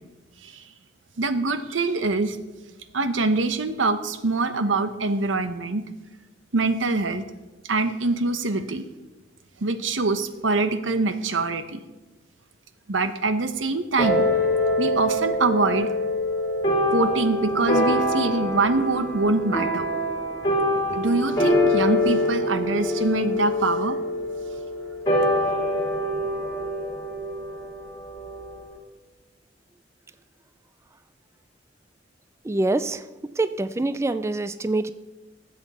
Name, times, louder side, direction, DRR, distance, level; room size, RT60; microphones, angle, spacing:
voice 1, 1.2-2.4 2.9-5.8 6.5-7.2 7.7-8.8 9.6-11.8 12.9-14.3 14.8-15.9 16.9-19.9 20.9-24.0, right 3 dB, 90° right, 10 dB, 0.9 m, -24 dB
sound 1, 14.0-28.7, left 1 dB, 20° left, 3.8 m, -25 dB
voice 2, 32.4-33.0 33.4-34.9, right 2 dB, 15° right, 12 dB, 0.3 m, -25 dB
19.5 x 7.9 x 4.2 m, 1.1 s
head